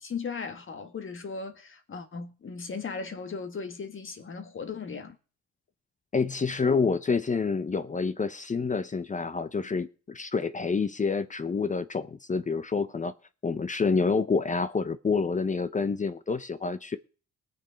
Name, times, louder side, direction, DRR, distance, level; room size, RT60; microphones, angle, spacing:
voice 1, 0.0-5.2, left 5 dB, 40° left, 1.8 m, -37 dB
voice 2, 6.1-13.1 13.4-17.0, left 4 dB, 25° left, 0.7 m, -28 dB
19.5 x 7.0 x 5.2 m
cardioid pair, 90°, 30 cm